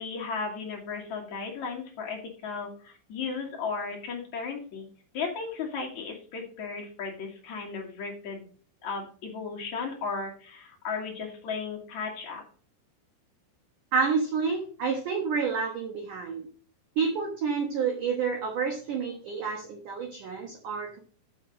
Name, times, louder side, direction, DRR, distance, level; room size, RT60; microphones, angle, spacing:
voice 1, 0.0-4.9 5.1-8.5 8.8-12.4, left 5 dB, 65° left, -1 dB, 1.9 m, -35 dB
voice 2, 13.9-16.5 17.0-21.0, right 5 dB, 75° right, 2 dB, 1.8 m, -29 dB
7.6 x 6.8 x 4.9 m, 0.42 s
omnidirectional pair, 5.6 m